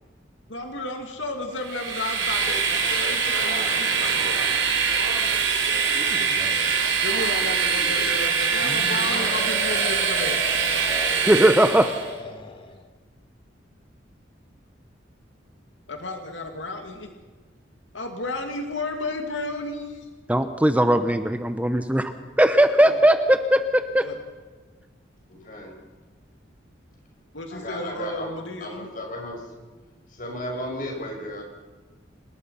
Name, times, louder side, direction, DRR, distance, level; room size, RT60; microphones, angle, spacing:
voice 1, 0.5-4.7 7.0-10.4 15.9-17.1 17.9-20.1 22.8-23.0 24.0-24.1 27.3-28.9, left 2 dB, 85° left, 4 dB, 2.3 m, -33 dB
Train, 1.6-12.1, right 5 dB, 85° right, 3.7 m, -23 dB
voice 2, 6.0-6.7 11.3-11.9 20.3-22.1 22.4-24.1, right 1 dB, 10° right, 8 dB, 0.8 m, -19 dB
voice 3, 7.3-8.0 25.3-25.7 27.5-28.3 28.6-29.5 30.1-31.4, left 1 dB, 45° left, 1 dB, 6.5 m, -35 dB
sound 1, 8.6-12.8, left 2 dB, 25° left, 1.9 m, -35 dB
27.5 x 19.0 x 5.7 m, 1.3 s
head